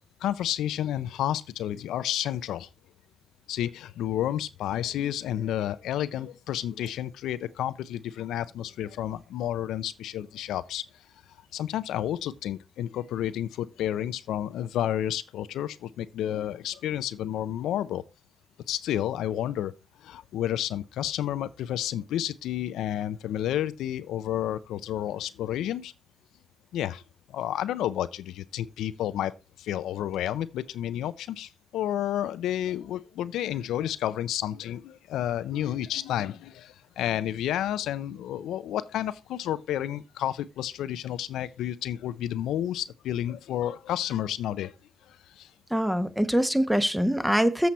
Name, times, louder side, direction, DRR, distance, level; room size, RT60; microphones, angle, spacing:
voice 1, 0.2-2.7 3.5-10.8 11.5-18.0 18.7-19.7 20.0-25.9 26.7-27.0 27.3-44.7 45.1-45.5, left 11 dB, 85° left, 0.5 m, -31 dB
voice 2, 45.7-47.7, equal, 5° right, 1.1 m, -24 dB
7.7 x 6.9 x 4.2 m
supercardioid pair, 65°, 0 cm